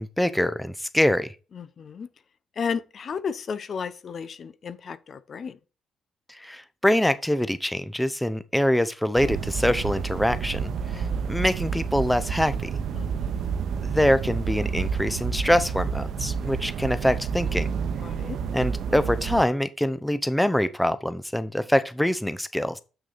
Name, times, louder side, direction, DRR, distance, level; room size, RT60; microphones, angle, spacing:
voice 1, 0.0-1.3 6.3-12.7 13.8-17.7 18.5-22.8, left 1 dB, 5° left, 0.7 m, -24 dB
voice 2, 1.6-2.1 2.6-5.6 10.9-11.4 12.9-13.5 18.0-18.4, left 6 dB, 50° left, 0.7 m, -34 dB
sound 1, 9.1-19.4, right 6 dB, 70° right, 0.9 m, -29 dB
7.1 x 6.2 x 4.1 m
cardioid pair, 90°, 0 cm